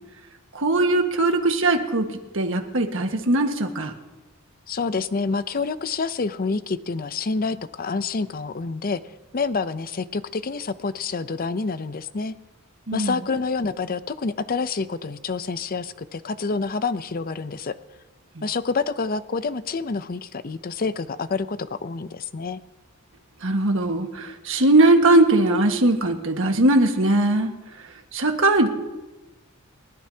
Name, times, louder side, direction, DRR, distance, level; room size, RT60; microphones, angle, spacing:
voice 1, 0.5-2.1 2.3-3.9 12.9-13.2 23.4-27.5 28.1-28.7, right 2 dB, 65° right, 4 dB, 1.6 m, -20 dB
voice 2, 4.7-9.0 9.3-12.3 12.9-17.7 18.4-22.6, left 4 dB, 45° left, 13 dB, 0.6 m, -27 dB
29.5 x 13.0 x 2.8 m, 1.1 s
head